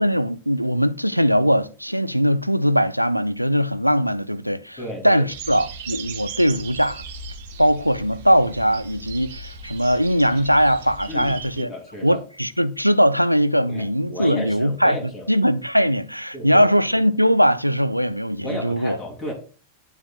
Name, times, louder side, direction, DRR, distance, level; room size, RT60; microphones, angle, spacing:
voice 1, 0.0-4.8 5.0-7.0 7.6-11.7 12.0-15.0 15.3-19.0, equal, 90° right, 0.4 m, -20 dB
voice 2, 4.8-5.2 11.1-12.2 13.7-15.3 16.3-16.7 18.4-19.3, left 1 dB, 30° left, 2.2 m, -33 dB
sound 1, 5.3-11.6, right 4 dB, 55° right, 0.9 m, -37 dB
9.0 x 6.1 x 2.2 m
figure-of-eight pair, 90°, 0 cm